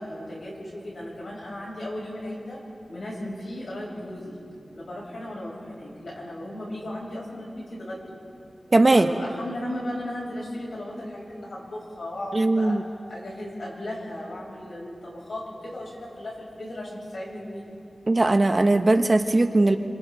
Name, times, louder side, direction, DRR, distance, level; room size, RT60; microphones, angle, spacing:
voice 1, 0.0-2.6 2.9-4.3 4.7-8.2 8.9-12.8 13.1-17.7, left 1 dB, 80° left, -5 dB, 7.8 m, -36 dB
voice 2, 8.7-9.1 12.3-12.8 18.1-19.8, right 2 dB, 35° right, 6 dB, 1.1 m, -19 dB
28.5 x 26.5 x 4.1 m, 2.5 s
wide cardioid pair, 100°, 0 cm